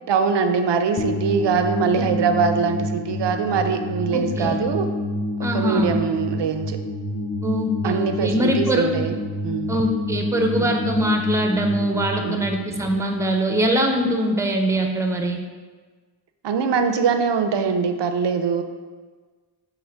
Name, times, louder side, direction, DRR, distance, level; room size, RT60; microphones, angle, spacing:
voice 1, 0.1-4.9 5.4-6.8 7.8-9.1 9.4-9.8 10.5-10.7 12.2-12.4 16.4-18.6, right 5 dB, 60° right, 7 dB, 0.5 m, -22 dB
sound 1, 1.0-14.1, left 1 dB, 35° left, 0.6 m, -28 dB
voice 2, 4.1-4.6 5.4-5.9 7.4-8.9 9.7-15.4, equal, 5° right, 3 dB, 0.5 m, -22 dB
5.5 x 2.1 x 4.3 m, 1.4 s
cardioid pair, 45°, 49 cm